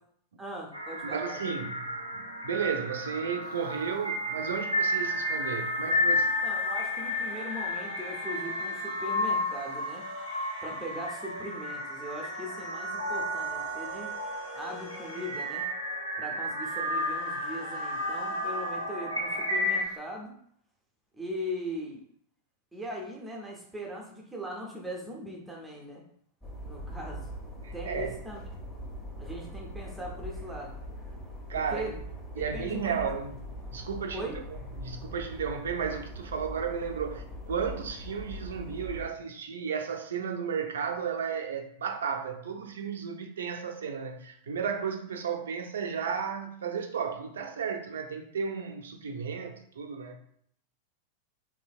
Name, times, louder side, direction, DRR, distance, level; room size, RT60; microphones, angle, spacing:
voice 1, 0.4-1.4 6.4-10.0 10.6-14.1 14.5-15.7 16.2-20.4 21.2-22.0 22.7-26.0 26.7-27.3 27.7-28.4 29.2-30.8 31.7-31.9 32.4-33.0 34.1-34.4, equal, 5° right, 0.6 m, -39 dB
sound 1, 0.7-19.8, left 1 dB, 90° left, 0.5 m, -32 dB
voice 2, 1.0-1.9 2.1-6.3 27.6-28.2 31.5-32.0 32.4-50.2, right 6 dB, 65° right, 0.4 m, -34 dB
sound 2, 3.4-20.0, equal, 45° left, 0.7 m, -52 dB
sound 3, 26.4-39.1, equal, 20° left, 1.3 m, -41 dB
3.1 x 2.7 x 2.3 m
figure-of-eight pair, 90°, 0 cm